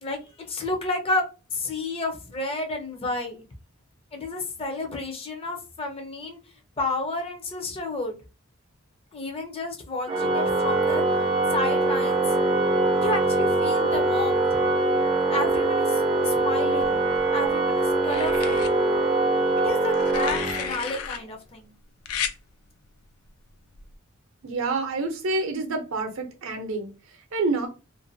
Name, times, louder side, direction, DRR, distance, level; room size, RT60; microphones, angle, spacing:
voice 1, 0.0-3.4 4.1-6.4 6.8-8.2 9.1-11.0 11.5-12.2 12.9-14.5 15.3-17.0 17.3-18.7 19.6-21.7, left 2 dB, 25° left, 0.5 m, -31 dB
Organ, 10.1-21.0, right 2 dB, 25° right, 0.4 m, -23 dB
sound 1, 16.8-17.5 18.0-18.7 19.8-21.2 22.1-22.4 23.7-23.9, left 7 dB, 90° left, 0.4 m, -33 dB
voice 2, 24.4-27.7, right 3 dB, 65° right, 0.6 m, -28 dB
2.5 x 2.2 x 2.6 m
head